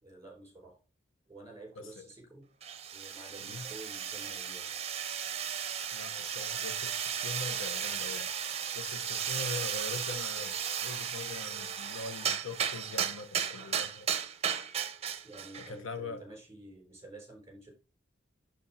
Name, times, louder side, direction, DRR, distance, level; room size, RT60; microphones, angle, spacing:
voice 1, 0.0-0.8 1.3-2.5 2.9-4.7 15.2-17.7, right 2 dB, 15° right, 4.2 m, -50 dB
sound 1, 2.6-15.7, right 8 dB, 30° right, 0.8 m, -35 dB
voice 2, 5.9-8.3 8.7-10.5 10.8-14.1 15.6-16.2, left 3 dB, 85° left, 1.1 m, -42 dB
10.5 x 3.7 x 4.3 m
head